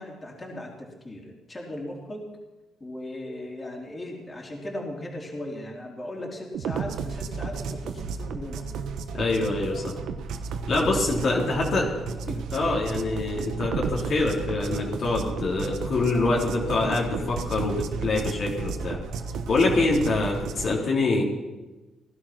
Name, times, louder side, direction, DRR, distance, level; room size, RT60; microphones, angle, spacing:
voice 1, 0.0-2.3 2.8-8.6 10.7-11.5 11.8-12.0 12.3-12.5, left 1 dB, 25° left, -1 dB, 3.8 m, -38 dB
sound 1, 6.5-20.7, right 5 dB, 80° right, 1.2 m, -33 dB
voice 2, 9.1-10.0 10.7-11.9 12.5-19.0 19.5-21.2, left 3 dB, 55° left, -3 dB, 3.4 m, -25 dB
18.5 x 11.5 x 6.1 m, 1.1 s
cardioid pair, 90°, 0 cm